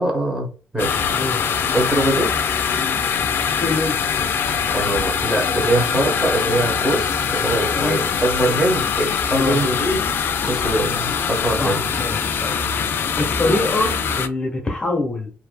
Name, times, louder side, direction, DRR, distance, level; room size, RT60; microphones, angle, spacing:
voice 1, 0.0-1.0 1.7-2.3 4.7-10.0 10.4-11.8, right 1 dB, 10° right, 0 dB, 1.1 m, -22 dB
sound 1, 0.8-14.3, left 6 dB, 65° left, 0.4 m, -22 dB
voice 2, 3.4-4.0 7.7-8.0 9.3-9.6 11.6-12.8 13.2-15.3, left 2 dB, 25° left, 1 dB, 0.9 m, -24 dB
2.6 x 2.5 x 2.2 m, 0.38 s
cardioid pair, 85°, 4 cm